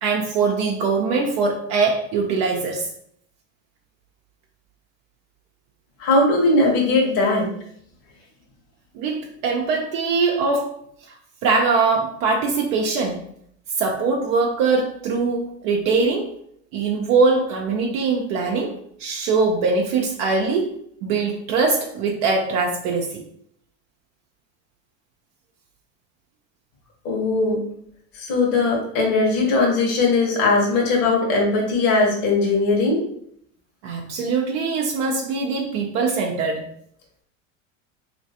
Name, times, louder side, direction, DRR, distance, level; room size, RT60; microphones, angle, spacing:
voice 1, 0.0-2.9 8.9-10.7 11.1-11.2 11.4-13.2 13.8-16.3 16.7-18.7 19.0-20.7 21.0-23.2 33.8-36.7, right 4 dB, 65° right, 0 dB, 0.7 m, -22 dB
voice 2, 6.0-7.5 27.0-27.6 28.1-33.0, left 3 dB, 55° left, -1 dB, 1.3 m, -19 dB
3.1 x 3.0 x 2.8 m, 0.67 s
hypercardioid pair, 85°, 40 cm